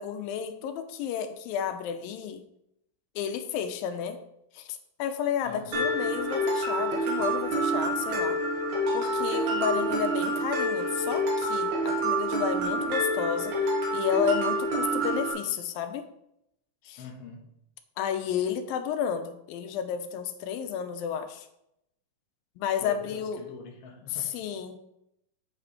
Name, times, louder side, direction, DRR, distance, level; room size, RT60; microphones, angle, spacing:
voice 1, 0.0-2.4 3.2-4.2 4.5-8.4 8.9-13.6 13.9-16.1 16.9-17.1 18.0-21.5 22.6-23.4 24.1-24.8, left 8 dB, 90° left, 8 dB, 2.4 m, -32 dB
voice 2, 5.4-5.8 17.0-17.5 22.8-24.3, left 5 dB, 55° left, 1 dB, 2.0 m, -43 dB
Mallet percussion, 5.7-15.3, right 1 dB, 60° right, 3.2 m, -27 dB
8.6 x 5.0 x 4.9 m, 0.79 s
omnidirectional pair, 4.1 m